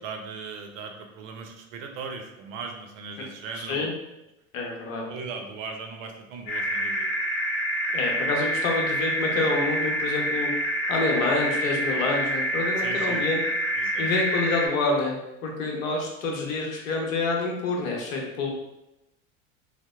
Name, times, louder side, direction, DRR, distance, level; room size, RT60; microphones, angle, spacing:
voice 1, 0.0-3.9 5.1-7.1 12.8-13.2 13.7-14.1, right 5 dB, 70° right, 4 dB, 0.5 m, -38 dB
voice 2, 4.5-5.0 7.9-10.5 10.9-13.4 14.0-15.2 15.4-18.5, left 3 dB, 80° left, 0 dB, 0.7 m, -27 dB
sound 1, 6.5-14.7, right 1 dB, 40° left, 0.8 m, -27 dB
2.7 x 2.0 x 2.3 m, 0.91 s
hypercardioid pair, 85°, 40 cm